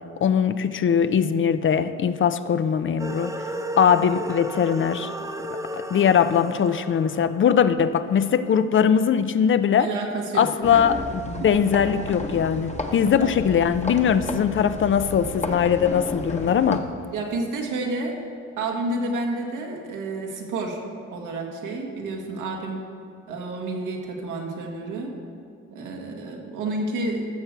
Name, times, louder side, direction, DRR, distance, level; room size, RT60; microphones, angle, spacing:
voice 1, 0.2-3.3 3.8-5.1 5.5-9.9 10.3-16.9, left 7 dB, 40° left, 0.5 m, -21 dB
sound 1, 3.0-8.4, right 1 dB, 10° right, 0.8 m, -34 dB
voice 2, 9.8-10.8 11.4-11.5 13.2-13.4 17.1-18.2 18.6-20.8 21.1-22.8 23.3-25.1 25.7-27.3, right 2 dB, 90° right, 1.7 m, -30 dB
sound 2, 10.6-16.8, left 2 dB, 25° left, 1.0 m, -33 dB
15.0 x 6.6 x 4.6 m
cardioid pair, 90°, 30 cm